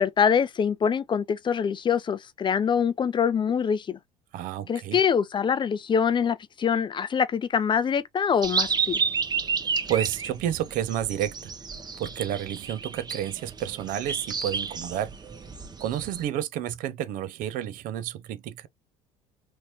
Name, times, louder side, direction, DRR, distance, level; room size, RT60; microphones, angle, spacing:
voice 1, 0.0-4.0 4.7-9.0, left 7 dB, 30° left, 0.5 m, -24 dB
voice 2, 4.3-5.0 9.9-11.5 12.0-15.1 15.8-18.7, right 11 dB, 65° right, 0.5 m, -30 dB
sound 1, 8.4-16.2, right 5 dB, 25° right, 0.8 m, -31 dB
3.1 x 2.7 x 2.8 m
supercardioid pair, 75°, 15 cm